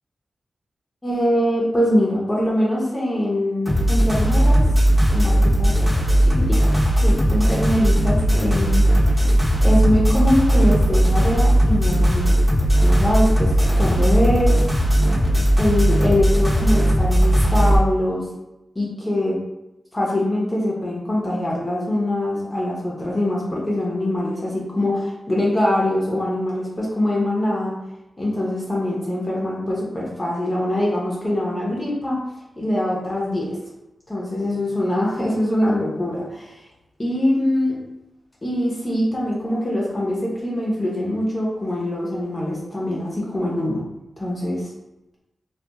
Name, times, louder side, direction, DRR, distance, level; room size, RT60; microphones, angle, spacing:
voice 1, 1.0-4.6 5.1-5.7 6.2-6.7 7.0-8.8 9.6-12.3 12.8-14.6 15.6-18.2 18.8-19.4 19.9-27.7 28.2-32.2 32.6-33.5 34.1-36.6 37.0-37.8 38.4-43.8 44.2-44.7, left 1 dB, 30° left, -5 dB, 0.7 m, -23 dB
sound 1, 3.7-17.8, equal, 10° right, 0.9 m, -17 dB
2.8 x 2.3 x 2.2 m, 0.92 s
cardioid pair, 70°, 0 cm